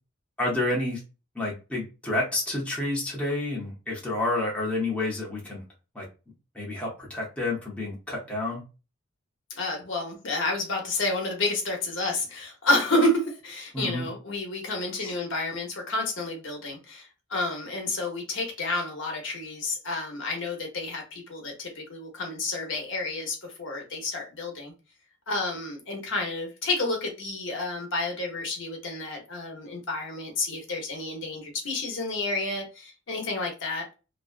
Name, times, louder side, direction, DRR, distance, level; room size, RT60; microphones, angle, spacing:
voice 1, 0.4-1.0 1.3-5.6 5.9-6.1 6.5-8.6 13.7-14.1 15.0-15.1, left 2 dB, 5° left, 0.6 m, -29 dB
voice 2, 9.5-24.7 25.3-33.9, left 2 dB, 60° left, 0.8 m, -30 dB
2.5 x 2.2 x 2.3 m
head